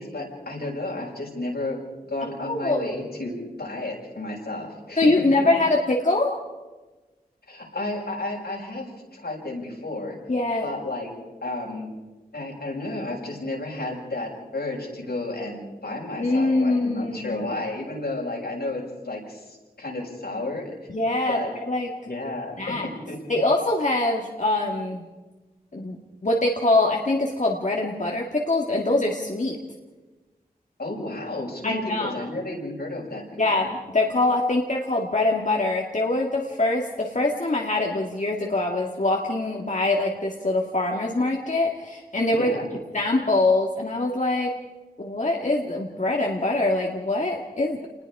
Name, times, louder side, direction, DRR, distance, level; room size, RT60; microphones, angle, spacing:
voice 1, 0.0-1.8 2.1-5.5 7.5-8.9 9.1-10.2 10.6-11.1 11.4-11.9 12.3-20.6 21.3-21.5 22.0-22.8 23.1-23.4 30.8-33.4 42.3-42.7, left 2 dB, 85° left, -3 dB, 6.8 m, -32 dB
voice 2, 2.4-3.0 5.0-6.4 10.3-10.7 16.2-17.4 20.9-21.9 22.6-22.9 23.3-25.0 25.7-26.0 26.2-29.6 31.6-32.2 33.4-42.5 42.9-44.5 45.0-47.9, left 2 dB, 50° left, -1 dB, 2.2 m, -23 dB
28.0 x 20.5 x 4.9 m, 1.2 s
wide cardioid pair, 55°, 16 cm